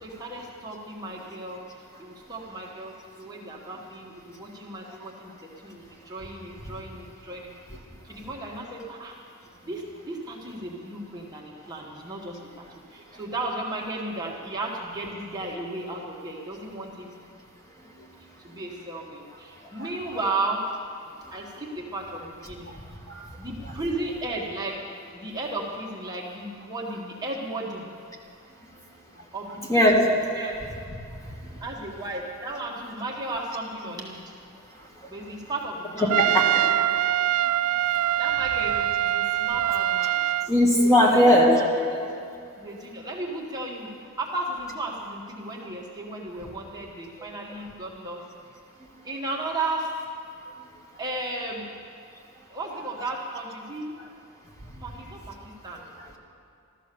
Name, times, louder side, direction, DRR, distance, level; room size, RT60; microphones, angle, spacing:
voice 1, 0.0-1.6 2.0-7.5 8.0-9.2 9.6-17.1 18.2-20.6 21.1-22.7 23.2-24.8 25.1-27.9 29.3-29.9 30.3-30.6 31.6-34.2 35.1-36.1 38.2-40.2 41.0-42.1 42.6-48.2 49.0-50.0 51.0-51.7 52.5-53.9 54.8-55.8, right 2 dB, 20° right, -2 dB, 1.5 m, -34 dB
voice 2, 29.7-30.1 31.4-31.5 35.0-35.1 36.0-36.7 40.4-41.6 54.0-54.1 54.7-54.8, equal, 15° left, -1 dB, 1.9 m, -20 dB
Trumpet, 36.1-40.5, right 13 dB, 85° right, 0.4 m, -24 dB
14.5 x 13.0 x 6.9 m, 2.6 s
head